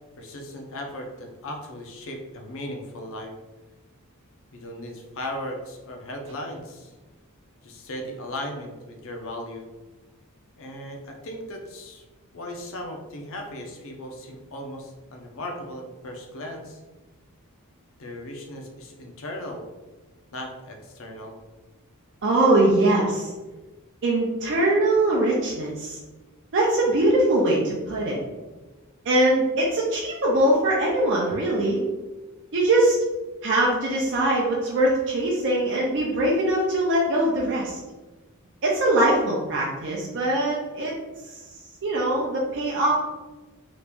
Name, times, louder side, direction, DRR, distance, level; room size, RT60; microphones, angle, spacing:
voice 1, 0.2-3.3 4.5-6.9 7.6-9.6 10.6-12.0 12.3-16.8 18.0-19.7 20.3-21.4, left 1 dB, 65° left, 2 dB, 0.6 m, -37 dB
voice 2, 22.2-23.3 24.0-26.0 26.5-28.2 29.0-31.8 32.5-33.0 33.4-37.8 38.6-40.9 41.3-41.4 41.8-42.9, right 1 dB, 55° right, -3 dB, 0.5 m, -22 dB
3.0 x 2.5 x 3.4 m, 1.2 s
head